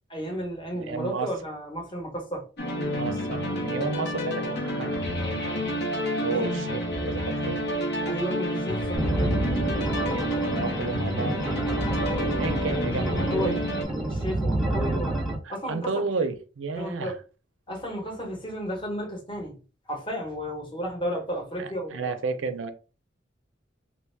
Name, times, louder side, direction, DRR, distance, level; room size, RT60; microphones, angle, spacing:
voice 1, 0.1-2.5 6.3-6.5 8.1-9.3 12.8-15.9 16.2-16.3 16.7-17.2 17.7-19.6 19.9-22.1, equal, 25° left, 1.1 m, -33 dB
voice 2, 0.8-1.3 2.9-5.0 5.3-5.6 6.2-6.8 7.1-7.7 9.8-13.6 15.4-17.2 21.6-22.7, right 4 dB, 80° right, 0.5 m, -33 dB
sound 1, 2.6-13.8, equal, 60° left, 0.8 m, -29 dB
sound 2, 9.0-15.4, right 2 dB, ahead, 0.8 m, -28 dB
3.1 x 2.3 x 3.3 m
head